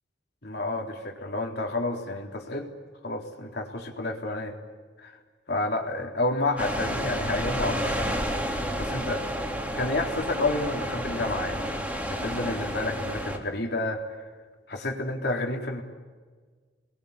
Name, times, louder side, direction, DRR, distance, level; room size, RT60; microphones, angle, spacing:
voice 1, 0.4-2.7 3.0-4.6 5.0-5.2 5.5-8.2 8.5-9.2 9.7-11.8 12.1-14.2 14.7-15.8, left 2 dB, 60° left, 2 dB, 3.9 m, -30 dB
sound 1, 6.6-13.4, equal, 10° right, 3.5 m, -30 dB
30.0 x 22.0 x 8.6 m, 1.5 s
head